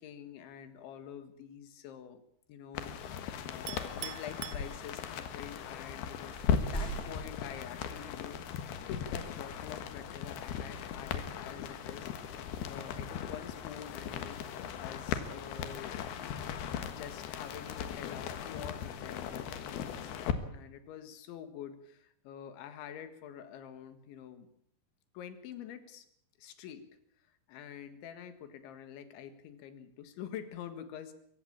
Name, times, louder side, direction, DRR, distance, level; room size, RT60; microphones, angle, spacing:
voice 1, 0.0-2.2 2.5-3.2 3.5-12.1 12.6-16.0 16.6-20.1 20.5-24.5 25.1-26.1 26.4-26.8 27.5-31.1, left 9 dB, 80° left, 10 dB, 4.1 m, -47 dB
sound 1, 2.8-20.3, left 8 dB, 65° left, 3.2 m, -38 dB
Chink clink, 3.7-5.3, right 14 dB, 85° right, 3.4 m, -45 dB
sound 2, 6.3-8.0 8.8-9.0, right 2 dB, 15° left, 4.5 m, -41 dB
23.0 x 15.5 x 8.7 m, 0.70 s
omnidirectional pair, 5.2 m